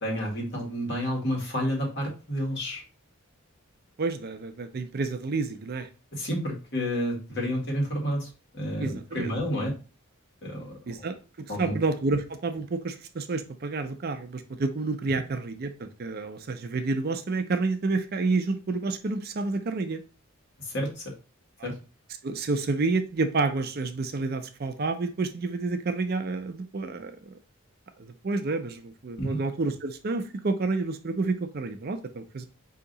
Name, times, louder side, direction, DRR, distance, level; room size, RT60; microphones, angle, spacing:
voice 1, 0.0-2.8 6.1-8.3 8.5-9.7 10.4-11.1 11.5-11.8 20.6-21.1 21.6-21.7 29.2-29.4, equal, 55° left, -1 dB, 1.8 m, -30 dB
voice 2, 4.0-5.9 8.8-9.3 10.9-11.1 11.6-20.0 21.6-21.8 22.2-27.4 28.0-32.5, right 3 dB, 45° right, 8 dB, 0.5 m, -29 dB
4.6 x 2.8 x 3.9 m, 0.34 s
head